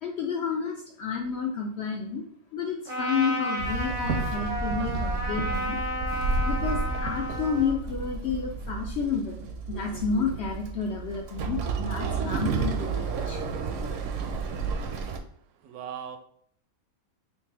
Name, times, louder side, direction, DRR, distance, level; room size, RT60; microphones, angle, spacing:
voice 1, 0.0-2.2 2.5-5.8 6.5-13.4, left 6 dB, 70° left, 1 dB, 0.6 m, -30 dB
Trumpet, 2.9-7.8, equal, 35° right, 0.5 m, -32 dB
Walk footsteps / Chatter / Hiss, 3.6-15.2, right 4 dB, 70° right, 0.8 m, -31 dB
voice 2, 15.3-16.2, right 8 dB, 85° right, 6 dB, 1.1 m, -40 dB
3.3 x 3.1 x 3.3 m, 0.63 s
omnidirectional pair, 1.5 m